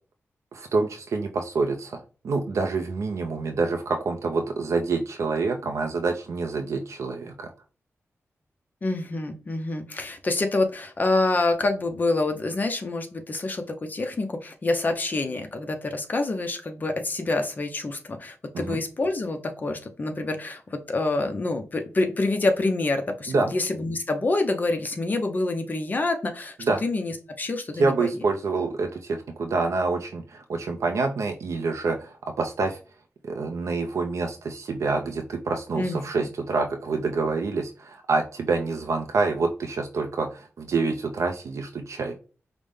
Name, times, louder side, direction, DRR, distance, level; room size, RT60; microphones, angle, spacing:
voice 1, 0.5-7.5 18.5-18.8 23.3-23.5 26.6-26.8 27.8-32.8 33.2-42.2, right 3 dB, 80° right, 4 dB, 0.5 m, -27 dB
voice 2, 8.8-26.6 26.8-28.1 35.8-36.3, left 2 dB, 35° left, 5 dB, 0.6 m, -27 dB
5.1 x 2.1 x 3.4 m, 0.36 s
wide cardioid pair, 140°, 5 cm